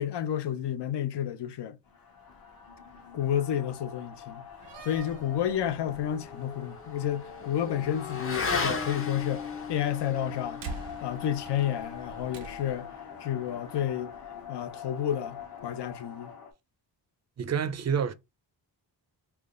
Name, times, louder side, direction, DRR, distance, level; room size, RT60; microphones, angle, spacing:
voice 1, 0.0-1.8 3.1-4.5 4.8-10.6 11.0-12.9 13.2-14.1 14.5-16.3, left 10 dB, 70° left, 0.6 m, -31 dB
sound 1, 1.9-16.5, left 7 dB, 55° left, 1.0 m, -45 dB
Slam, 4.5-12.9, right 4 dB, 90° right, 0.8 m, -48 dB
Motorcycle / Accelerating revving vroom, 5.5-14.2, left 5 dB, 30° left, 0.7 m, -37 dB
voice 2, 17.4-18.1, right 7 dB, 40° right, 0.4 m, -28 dB
3.5 x 2.2 x 3.7 m
wide cardioid pair, 115°, 42 cm